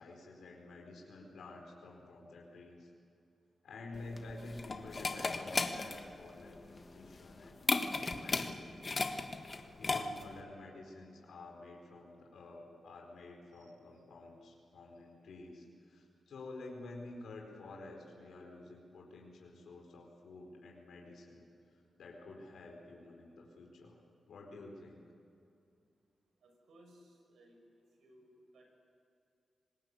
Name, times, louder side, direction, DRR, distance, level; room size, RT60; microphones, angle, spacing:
voice 1, 0.0-2.9 3.6-8.8 9.8-24.0 24.3-25.0, left 2 dB, 85° left, 0 dB, 4.6 m, -50 dB
sound 1, 4.0-10.4, left 3 dB, 40° left, 1.5 m, -36 dB
voice 2, 26.4-27.6 28.0-28.7, right 1 dB, 90° right, 3 dB, 5.9 m, -61 dB
25.5 x 20.5 x 8.3 m, 2.5 s
cardioid pair, 70°, 0 cm